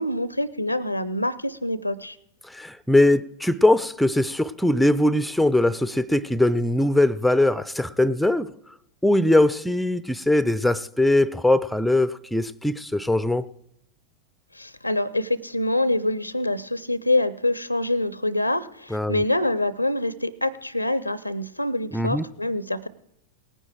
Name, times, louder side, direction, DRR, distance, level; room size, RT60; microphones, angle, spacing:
voice 1, 0.0-2.2 14.5-22.9, left 1 dB, 85° left, 0.6 m, -25 dB
voice 2, 2.5-8.5 9.0-13.4 18.9-19.2 21.9-22.2, left 1 dB, ahead, 0.5 m, -21 dB
18.5 x 9.8 x 4.6 m
figure-of-eight pair, 90°, 0 cm